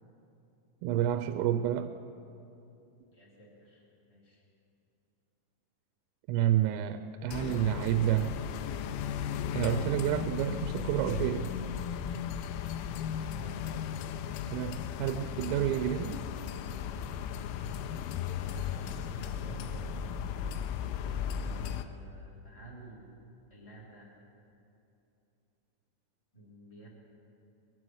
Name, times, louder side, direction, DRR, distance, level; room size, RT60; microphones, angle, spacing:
voice 1, 0.8-1.9 6.3-8.3 9.5-11.5 14.5-14.7 15.0-16.2, right 12 dB, 85° right, 8 dB, 3.1 m, -29 dB
voice 2, 3.1-4.4 13.3-13.9 14.6-15.1 18.4-20.4 20.9-23.1 23.5-24.1 26.3-26.9, right 1 dB, 15° left, -5 dB, 1.1 m, -52 dB
sound 1, 7.3-21.8, left 8 dB, 85° left, 2.8 m, -36 dB
22.0 x 7.8 x 7.8 m, 2.7 s
omnidirectional pair, 5.9 m